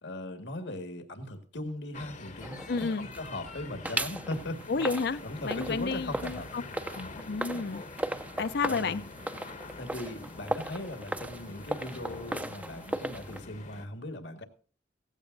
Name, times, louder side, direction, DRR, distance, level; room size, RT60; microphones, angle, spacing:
voice 1, 0.0-4.6 5.2-6.5 8.7-9.1 9.8-14.5, left 1 dB, 85° left, 1.9 m, -39 dB
sound 1, 1.9-13.9, left 3 dB, 45° left, 0.9 m, -45 dB
sound 2, 2.4-3.5 3.9-13.4, right 1 dB, 10° right, 0.5 m, -38 dB
voice 2, 2.7-3.1 4.7-6.6 6.9-7.8 8.4-9.0, left 4 dB, 65° left, 0.6 m, -31 dB
16.5 x 15.5 x 2.6 m
head